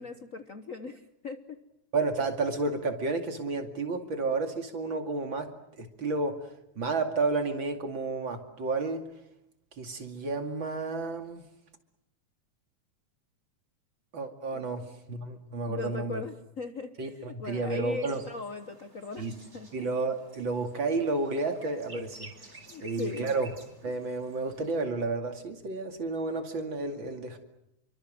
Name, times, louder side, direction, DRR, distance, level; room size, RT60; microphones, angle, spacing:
voice 1, 0.0-1.6 14.5-15.0 15.7-19.3 19.5-19.9 22.7-23.3, left 3 dB, 90° left, 7 dB, 0.7 m, -39 dB
voice 2, 1.9-5.5 5.8-6.5 6.8-9.1 9.8-11.4 14.1-16.2 17.0-18.2 19.2-19.3 19.7-22.3 22.8-23.5 23.8-27.4, right 3 dB, 45° right, 5 dB, 3.0 m, -31 dB
sound 1, 18.0-24.8, right 2 dB, 20° right, 4.1 m, -52 dB
28.5 x 24.0 x 7.8 m, 0.83 s
omnidirectional pair, 3.3 m